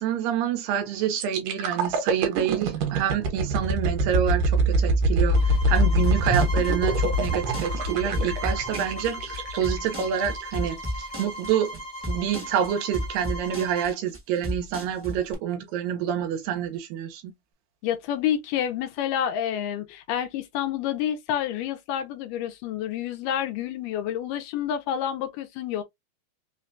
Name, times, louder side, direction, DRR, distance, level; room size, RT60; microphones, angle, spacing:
voice 1, 0.0-17.3, right 9 dB, 90° right, 2.5 m, -27 dB
sound 1, 1.2-11.0 11.5-11.7, right 1 dB, 70° right, 2.6 m, -25 dB
sound 2, 5.3-14.0, equal, 60° left, 1.3 m, -38 dB
sound 3, 5.7-15.3, equal, 15° right, 0.5 m, -33 dB
voice 2, 17.8-25.8, left 10 dB, 85° left, 2.2 m, -29 dB
5.6 x 2.2 x 2.6 m
omnidirectional pair, 4.0 m